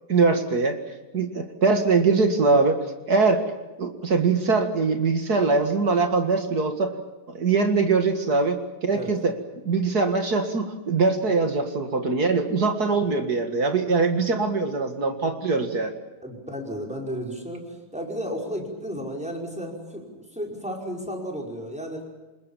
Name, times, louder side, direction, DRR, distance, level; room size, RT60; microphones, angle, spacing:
voice 1, 0.1-0.8 1.1-2.8 3.1-3.4 3.8-6.9 7.3-9.4 9.7-15.9, right 4 dB, 35° right, 6 dB, 1.6 m, -22 dB
voice 2, 16.2-22.0, equal, ahead, 0 dB, 4.9 m, -33 dB
27.0 x 21.0 x 7.4 m, 1.1 s
omnidirectional pair, 4.1 m